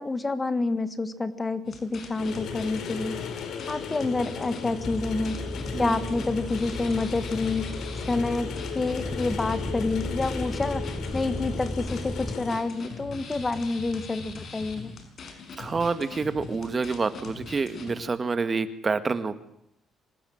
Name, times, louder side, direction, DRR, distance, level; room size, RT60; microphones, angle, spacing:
voice 1, 0.0-3.2 3.7-5.4 5.8-7.8 8.1-8.5 8.7-10.8 11.1-14.9, left 3 dB, 25° left, 13 dB, 1.8 m, -28 dB
sound 1, 1.6-18.0, left 4 dB, 60° left, 5.8 m, -41 dB
sound 2, 2.2-12.6, left 6 dB, 75° left, 4.1 m, -36 dB
sound 3, 4.8-12.3, equal, 5° left, 1.2 m, -35 dB
voice 2, 5.7-6.2 15.6-19.4, right 4 dB, 35° right, 12 dB, 1.7 m, -28 dB
26.0 x 19.0 x 8.0 m, 0.74 s
cardioid pair, 90°, 0 cm